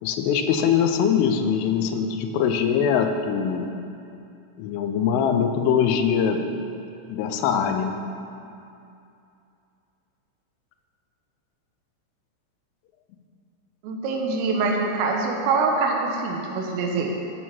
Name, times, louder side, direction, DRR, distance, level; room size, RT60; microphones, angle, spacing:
voice 1, 0.0-3.7 4.6-6.5 7.1-8.0, left 7 dB, 85° left, 6 dB, 3.2 m, -22 dB
voice 2, 13.8-17.1, right 4 dB, 90° right, 1 dB, 3.9 m, -24 dB
15.5 x 6.4 x 6.1 m, 2.6 s
omnidirectional pair, 5.7 m